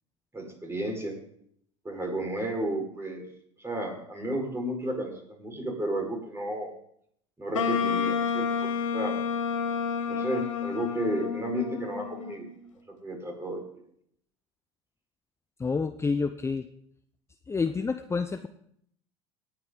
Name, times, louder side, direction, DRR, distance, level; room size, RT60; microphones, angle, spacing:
voice 1, 0.3-1.1 1.8-3.2 3.6-5.1 5.4-6.7 7.4-9.1 10.1-12.5 12.9-13.6, right 1 dB, 15° right, 1 dB, 5.2 m, -32 dB
Wind instrument woodwind instrument, 7.5-12.6, left 6 dB, 85° left, 1.2 m, -30 dB
voice 2, 15.6-16.7 17.5-18.5, left 4 dB, 15° left, 9 dB, 0.7 m, -28 dB
18.0 x 8.9 x 4.0 m, 0.69 s
hypercardioid pair, 75°, 16 cm